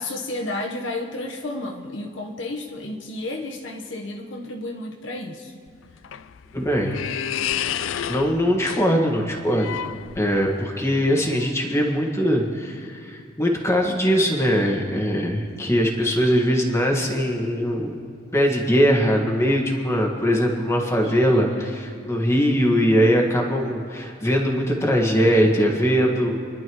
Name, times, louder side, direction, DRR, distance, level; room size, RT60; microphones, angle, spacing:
voice 1, 0.0-5.6 21.0-21.6, left 2 dB, 70° left, 1 dB, 1.2 m, -32 dB
sound 1, 5.7-10.6, left 9 dB, 85° left, 0.4 m, -31 dB
voice 2, 6.5-7.0 8.1-9.7 10.2-18.0 18.3-26.3, equal, 15° left, 0 dB, 1.8 m, -21 dB
28.5 x 11.5 x 3.1 m, 2.4 s
head